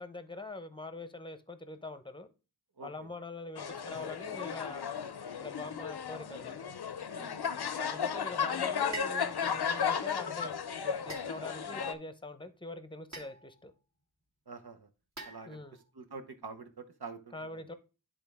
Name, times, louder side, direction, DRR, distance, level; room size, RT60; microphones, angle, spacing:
voice 1, 0.0-2.3 2.8-4.9 5.4-6.7 7.7-10.5 10.8-13.7 15.5-15.8 17.3-17.7, left 2 dB, 15° left, 0.7 m, -44 dB
voice 2, 2.8-3.1 7.1-7.6 14.5-14.9 15.2-15.6 15.9-17.6, right 4 dB, 75° right, 1.0 m, -47 dB
sound 1, 3.6-11.9, left 7 dB, 80° left, 0.6 m, -34 dB
sound 2, 8.9-9.3 11.1-11.8 13.1-13.6 15.2-15.8, right 3 dB, 45° right, 2.0 m, -45 dB
10.5 x 3.6 x 3.5 m
wide cardioid pair, 45°, 38 cm